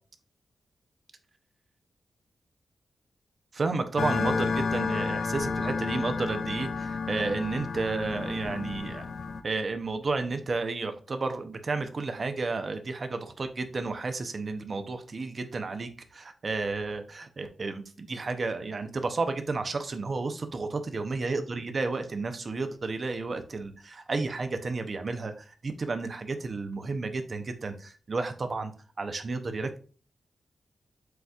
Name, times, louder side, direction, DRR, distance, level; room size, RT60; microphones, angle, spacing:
voice 1, 3.5-9.1 9.4-20.7 20.9-28.7 29.0-29.8, right 3 dB, 55° right, 8 dB, 0.7 m, -32 dB
sound 1, 4.0-9.4, left 4 dB, 70° left, 0.5 m, -31 dB
7.8 x 2.7 x 2.4 m, 0.40 s
cardioid pair, 55°, 0 cm